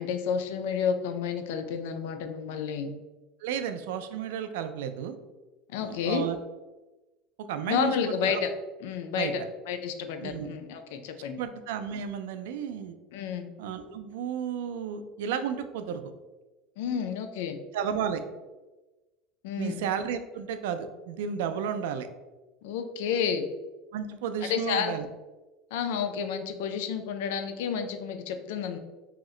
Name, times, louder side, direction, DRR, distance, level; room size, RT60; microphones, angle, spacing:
voice 1, 0.0-3.0 5.7-6.2 7.7-8.5 8.8-11.4 13.1-13.5 16.8-17.6 19.4-19.8 22.6-23.4 24.5-25.0 25.7-28.8, left 7 dB, 80° left, 7 dB, 0.3 m, -30 dB
voice 2, 3.4-5.2 5.8-6.4 7.5-8.4 9.2-9.3 10.2-10.5 11.4-13.0 13.6-16.1 17.7-18.2 19.6-22.1 23.9-25.1, right 8 dB, 85° right, 9 dB, 0.3 m, -33 dB
2.8 x 2.1 x 3.6 m, 1.1 s
cardioid pair, 155°, 0 cm